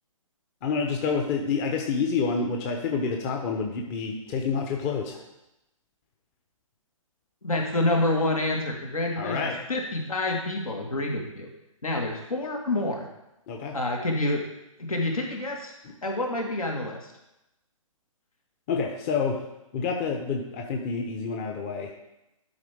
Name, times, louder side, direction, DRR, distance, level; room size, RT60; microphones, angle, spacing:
voice 1, 0.6-5.2 9.2-9.6 13.5-13.8 15.8-15.9 18.7-19.5 19.7-22.0, left 5 dB, 25° left, 2 dB, 0.9 m, -28 dB
voice 2, 7.4-11.5 11.8-13.1 13.7-14.4 14.8-15.7 16.0-17.0, left 2 dB, 80° left, 1 dB, 1.9 m, -28 dB
12.0 x 4.6 x 3.6 m, 0.90 s
figure-of-eight pair, 130°, 18 cm